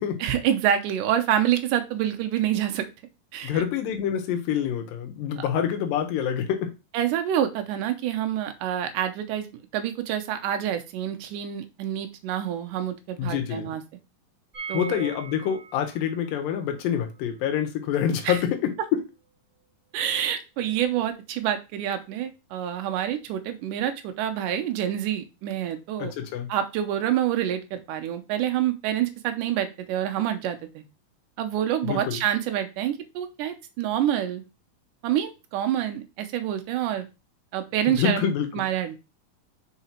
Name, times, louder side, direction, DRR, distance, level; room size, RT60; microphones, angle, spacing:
voice 1, 0.2-2.9 3.3-3.6 5.4-5.5 6.9-13.8 14.7-15.1 18.2-18.4 19.9-26.1 26.5-30.8 31.4-34.4 35.0-37.1 37.5-39.0, right 10 dB, 75° right, 2.2 m, -27 dB
voice 2, 3.4-6.7 13.2-13.7 14.7-19.0 26.0-26.5 31.8-32.2 37.9-38.7, left 9 dB, 80° left, 2.5 m, -26 dB
sound 1, 14.5-20.3 20.6-20.7 20.9-21.0, right 5 dB, 25° right, 2.4 m, -44 dB
5.8 x 3.9 x 4.4 m
omnidirectional pair, 4.1 m